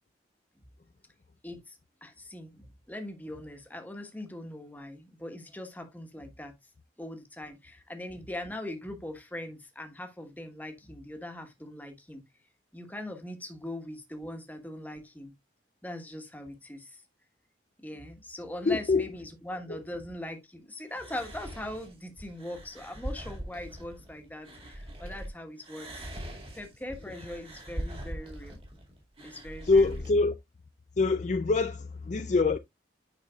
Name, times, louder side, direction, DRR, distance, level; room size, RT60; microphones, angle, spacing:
voice 1, 1.4-6.5 7.0-12.2 12.7-15.3 15.8-17.0 17.8-28.6 29.2-29.9, left 1 dB, 10° left, 1.3 m, -41 dB
voice 2, 18.7-19.1 19.7-19.8 29.6-30.3 31.0-32.6, left 3 dB, 40° left, 0.4 m, -24 dB
sound 1, 20.9-25.3 25.6-30.1, right 1 dB, 35° right, 2.1 m, -42 dB
9.0 x 5.5 x 2.3 m
head